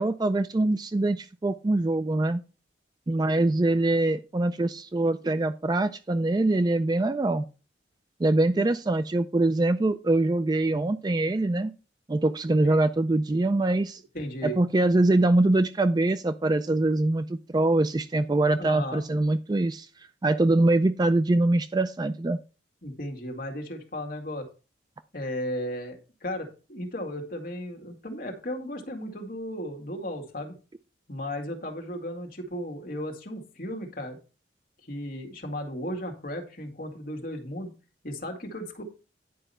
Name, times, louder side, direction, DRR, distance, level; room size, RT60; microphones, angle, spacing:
voice 1, 0.0-2.4 3.1-7.4 8.2-11.7 12.1-14.0 14.4-19.9 20.2-22.4, right 2 dB, 20° right, 11 dB, 0.4 m, -23 dB
voice 2, 14.1-14.6 18.6-19.0 22.8-24.5 25.1-30.6 31.1-34.2 34.8-37.8 38.0-38.8, equal, 50° left, 3 dB, 2.0 m, -35 dB
10.0 x 4.9 x 5.5 m, 0.34 s
head